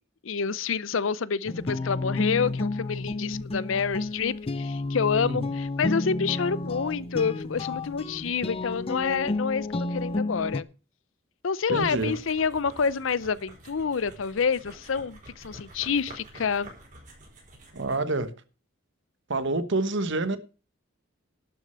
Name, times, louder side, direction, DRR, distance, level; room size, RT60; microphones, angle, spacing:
voice 1, 0.2-10.7 11.4-16.7, left 6 dB, 70° left, 0.6 m, -28 dB
sound 1, 1.5-10.6, left 2 dB, 30° left, 0.5 m, -31 dB
voice 2, 11.7-12.1 17.7-18.3 19.3-20.4, right 2 dB, 65° right, 1.2 m, -27 dB
sound 2, 11.8-18.1, right 1 dB, 40° right, 4.9 m, -49 dB
11.5 x 6.5 x 6.7 m
head